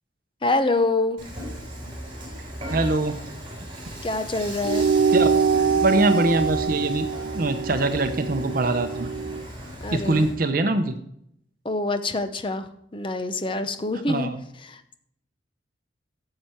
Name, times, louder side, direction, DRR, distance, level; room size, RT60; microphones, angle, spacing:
voice 1, 0.4-1.2 4.0-4.9 9.8-10.3 11.6-14.3 14.6-14.9, left 2 dB, 25° left, 10 dB, 0.7 m, -26 dB
Dishes pots and pans / Frying (food), 1.2-10.4, equal, 25° right, 4.3 m, -36 dB
voice 2, 2.7-3.2 5.1-5.3 5.8-7.1 7.3-9.1 9.9-10.9 14.1-14.4, right 2 dB, 50° right, 8 dB, 0.8 m, -23 dB
sound 1, 4.6-9.5, right 5 dB, 75° right, 0.3 m, -24 dB
10.0 x 7.7 x 4.5 m, 0.72 s
head